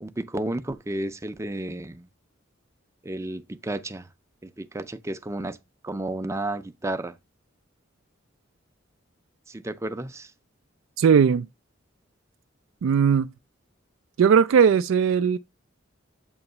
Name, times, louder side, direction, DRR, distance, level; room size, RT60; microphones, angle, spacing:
voice 1, 0.0-2.1 3.0-4.1 4.4-5.6 5.8-7.2 9.5-10.3, right 1 dB, 15° right, 0.5 m, -32 dB
voice 2, 11.0-11.5 12.8-13.3 14.2-15.4, right 7 dB, 75° right, 0.3 m, -18 dB
7.9 x 2.9 x 5.3 m
head